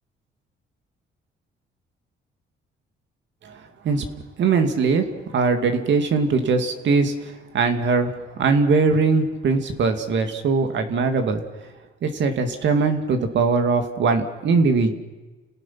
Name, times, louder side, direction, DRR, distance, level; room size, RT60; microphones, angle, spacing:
voice 1, 3.4-4.1 4.4-11.4 12.0-14.9, right 4 dB, 65° right, 6 dB, 2.5 m, -21 dB
29.5 x 18.0 x 5.9 m, 1.2 s
cardioid pair, 90°, 20 cm